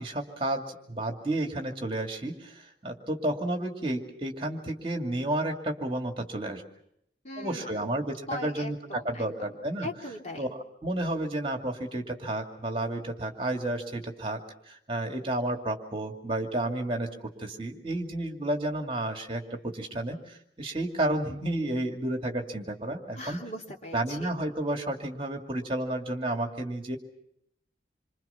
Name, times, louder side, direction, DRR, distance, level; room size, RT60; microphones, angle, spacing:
voice 1, 0.0-6.6 7.4-9.9 10.4-14.4 14.7-23.4 23.9-27.0, right 1 dB, 30° right, 4 dB, 2.5 m, -31 dB
voice 2, 7.2-7.9 8.3-9.5 9.8-10.5 23.2-24.3, left 1 dB, 40° left, 1 dB, 3.1 m, -40 dB
27.5 x 25.0 x 5.8 m, 0.74 s
head